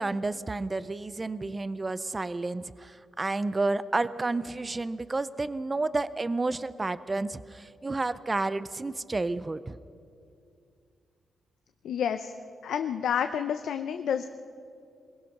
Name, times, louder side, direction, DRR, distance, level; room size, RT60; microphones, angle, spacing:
voice 1, 0.0-9.8, right 3 dB, 20° right, 15 dB, 0.4 m, -31 dB
voice 2, 11.8-12.3 12.6-14.3, left 8 dB, 70° left, 8 dB, 0.6 m, -29 dB
21.5 x 20.5 x 5.9 m, 2.5 s
wide cardioid pair, 165°, 0 cm